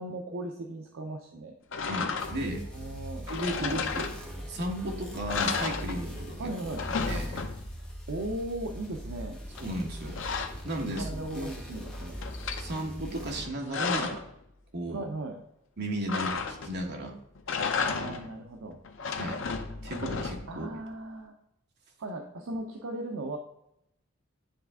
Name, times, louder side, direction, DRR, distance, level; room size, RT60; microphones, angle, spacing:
voice 1, 0.0-1.5 2.7-3.3 3.6-3.9 6.4-6.9 7.8-9.4 10.9-12.2 14.9-15.4 17.8-18.8 20.5-21.4 22.0-23.4, right 2 dB, 70° right, 3 dB, 0.6 m, -37 dB
sound 1, 1.7-2.6 3.3-4.6 4.9-5.0 5.3-6.4 6.6-7.9 9.6-11.4 11.8-12.7 13.4-14.3 16.1-16.9 17.4-18.4 18.8-20.6, left 5 dB, 65° left, 0.7 m, -33 dB
voice 2, 1.9-2.6 3.3-4.1 4.5-6.5 7.1-7.5 9.6-10.2 10.6-11.5 12.6-14.2 14.7-15.1 15.8-17.2 19.0-19.5 19.8-20.7, right 1 dB, 55° right, 1 dB, 1.3 m, -34 dB
sound 2, 2.2-13.4, equal, 5° left, 1.2 m, -41 dB
9.8 x 3.4 x 3.6 m, 0.79 s
head